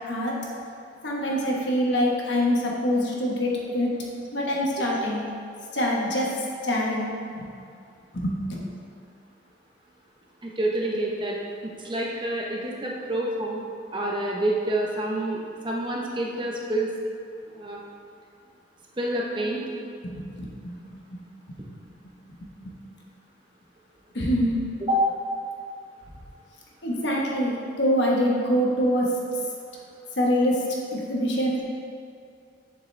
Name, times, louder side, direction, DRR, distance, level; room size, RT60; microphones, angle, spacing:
voice 1, 1.0-3.9 4.3-5.2 5.7-6.3 6.6-7.1 7.4-7.5 8.1-8.6 20.0-20.7 21.1-21.2 24.1-24.6 26.8-29.1 30.2-30.6 30.9-31.6, equal, 70° left, -3 dB, 1.2 m, -24 dB
voice 2, 10.4-11.4 11.6-13.6 13.9-15.4 15.6-16.9 17.5-17.8 19.0-19.6 21.6-21.7 24.9-25.1, right 1 dB, 25° right, -2 dB, 0.8 m, -27 dB
7.0 x 6.7 x 3.3 m, 2.4 s
head